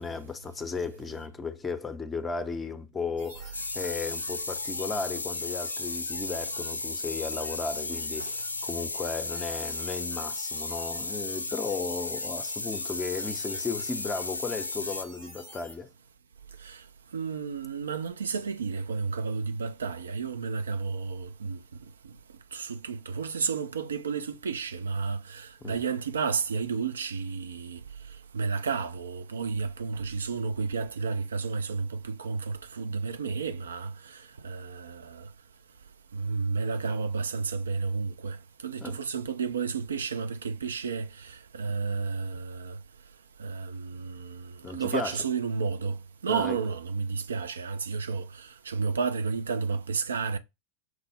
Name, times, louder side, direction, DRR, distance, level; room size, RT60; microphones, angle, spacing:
voice 1, 0.0-15.9 25.6-25.8 38.8-39.0 44.6-45.2 46.3-46.6, left 4 dB, 15° left, 0.6 m, -35 dB
sound 1, 3.2-15.8, equal, 85° right, 2.0 m, -47 dB
sound 2, 3.5-15.0, left 3 dB, 80° left, 0.3 m, -34 dB
voice 2, 17.1-21.6 22.5-27.8 28.3-35.3 36.1-38.4 38.6-42.8 43.4-50.4, right 5 dB, 70° right, 0.4 m, -32 dB
6.0 x 2.0 x 3.5 m
figure-of-eight pair, 90°, 0 cm